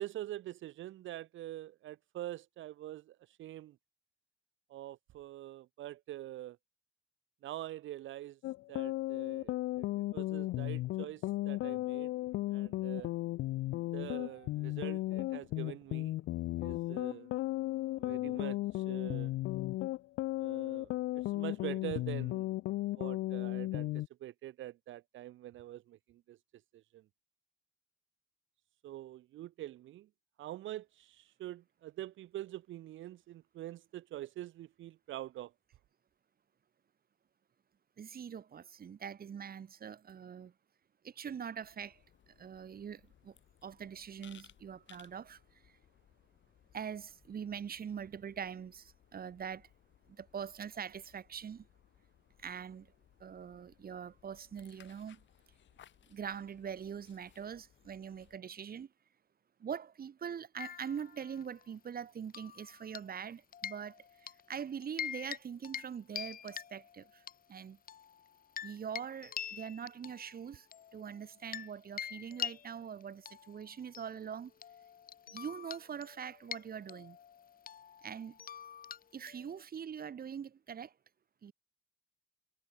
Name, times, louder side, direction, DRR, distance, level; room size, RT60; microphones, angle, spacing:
voice 1, 0.0-3.8 4.7-6.6 7.4-8.4 8.7-12.1 12.5-13.1 13.9-16.2 16.6-17.3 18.0-19.3 20.4-22.5 22.9-27.0 28.8-30.1 30.4-35.5, right 14 dB, 75° right, 0.9 m, -45 dB
sound 1, 8.4-24.1, left 17 dB, 90° left, 0.8 m, -35 dB
voice 2, 38.0-40.5 41.0-42.0 42.4-43.3 43.6-45.8 46.7-49.7 50.1-51.7 52.4-52.9 53.2-55.2 56.1-58.9 59.6-67.2 67.5-67.8 68.6-70.7 70.9-74.5 75.3-77.2 78.0-78.4 79.1-80.9 81.4-81.5, right 7 dB, 50° right, 2.3 m, -43 dB
sound 2, 41.6-58.4, left 10 dB, 70° left, 6.2 m, -65 dB
sound 3, 60.6-61.6 62.3-63.2 63.5-64.4 64.8-65.4 65.6-65.9 66.1-67.3 67.9-71.7 72.0-79.6, left 8 dB, 45° left, 0.9 m, -45 dB
cardioid pair, 90°, 20 cm